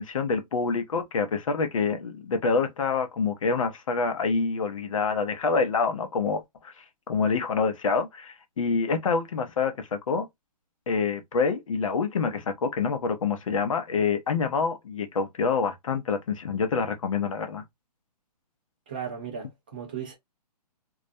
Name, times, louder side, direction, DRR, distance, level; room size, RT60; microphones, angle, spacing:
voice 1, 0.0-10.3 10.9-17.6, left 5 dB, 50° left, 0.6 m, -27 dB
voice 2, 18.9-20.2, right 7 dB, 15° right, 0.4 m, -36 dB
2.3 x 2.1 x 2.6 m
hypercardioid pair, 175°, 21 cm